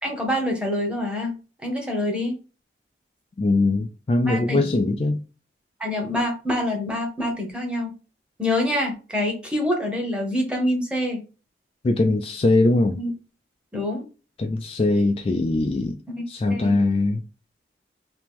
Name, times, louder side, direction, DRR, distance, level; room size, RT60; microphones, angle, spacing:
voice 1, 0.0-1.4 1.6-2.4 4.3-4.7 5.8-7.9 8.4-11.2 12.9-13.1 13.7-14.0 16.1-16.2 16.5-16.8, left 1 dB, 5° right, 1.0 m, -26 dB
voice 2, 3.4-5.2 11.8-13.0 14.4-16.0 16.3-17.2, left 2 dB, 30° left, 0.3 m, -21 dB
3.0 x 2.9 x 3.5 m
head